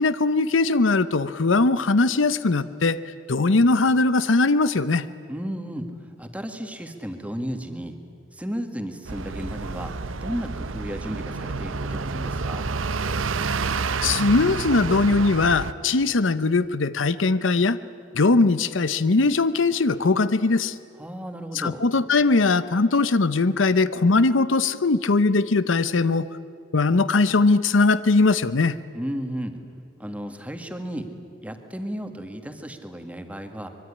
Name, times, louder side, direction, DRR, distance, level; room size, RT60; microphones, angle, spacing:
voice 1, 0.0-3.0 3.3-5.1 14.0-17.8 18.1-20.8 21.5-26.3 26.7-28.8, left 3 dB, 75° left, 15 dB, 0.8 m, -20 dB
voice 2, 5.3-5.9 6.2-8.0 8.3-9.9 10.2-12.7 21.0-21.8 28.9-29.6 30.0-31.1 31.4-33.7, equal, 5° right, 6 dB, 1.9 m, -33 dB
sound 1, 9.0-15.7, right 4 dB, 80° right, 0.9 m, -29 dB
24.5 x 22.5 x 9.9 m, 2.3 s
head